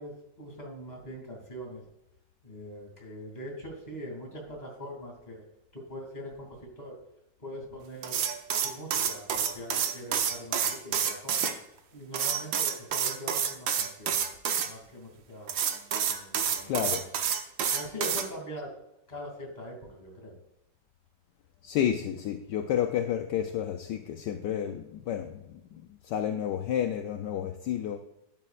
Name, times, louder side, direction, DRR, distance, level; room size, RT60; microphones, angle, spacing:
voice 1, 0.0-1.8 2.4-5.5 5.7-7.0 7.4-8.2 8.6-11.5 11.9-14.3 14.7-15.5 16.0-17.0 17.7-18.7 19.1-20.4, equal, 20° left, 0 dB, 2.9 m, -42 dB
sound 1, 8.0-11.5 12.1-14.7 15.5-18.2, right 8 dB, 85° right, 1.6 m, -28 dB
voice 2, 16.7-17.0 21.6-28.0, left 10 dB, 75° left, 6 dB, 1.2 m, -31 dB
12.0 x 9.7 x 2.5 m, 0.86 s
omnidirectional pair, 2.0 m